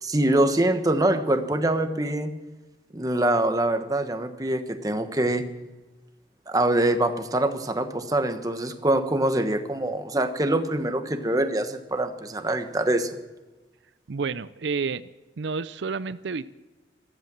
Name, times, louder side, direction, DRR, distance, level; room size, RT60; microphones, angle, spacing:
voice 1, 0.0-2.3 2.9-5.4 6.5-13.1, right 1 dB, 20° right, 8 dB, 1.2 m, -24 dB
voice 2, 14.1-15.1 15.4-16.5, right 5 dB, 75° right, 15 dB, 0.5 m, -30 dB
14.5 x 13.5 x 7.4 m, 1.1 s
head